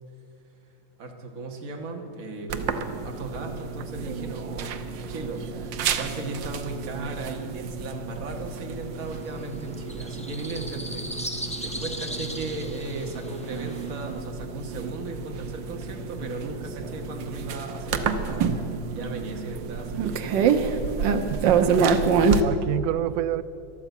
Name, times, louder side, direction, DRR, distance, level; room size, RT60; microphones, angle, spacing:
voice 1, 1.0-20.8, right 3 dB, 45° right, 2 dB, 1.9 m, -37 dB
sound 1, 2.5-22.4, right 6 dB, 70° right, 1.5 m, -28 dB
sound 2, 9.0-14.1, equal, 5° left, 0.7 m, -38 dB
voice 2, 21.3-23.4, right 13 dB, 85° right, 14 dB, 0.8 m, -29 dB
13.5 x 12.0 x 8.2 m, 2.6 s
omnidirectional pair, 2.2 m